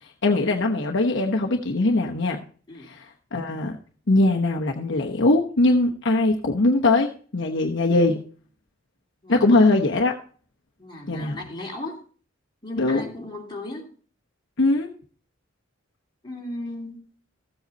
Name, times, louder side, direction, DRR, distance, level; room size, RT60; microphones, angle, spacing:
voice 1, 0.2-2.4 2.9-3.0 3.3-3.8 4.1-8.2 9.3-10.1 11.1-11.4 12.8-13.1 14.6-14.9, left 2 dB, 60° left, 1 dB, 1.0 m, -21 dB
voice 2, 9.2-9.7 10.8-12.0 12.6-13.9 16.2-17.0, left 2 dB, 20° left, -1 dB, 2.8 m, -36 dB
14.0 x 7.9 x 4.1 m, 0.42 s
head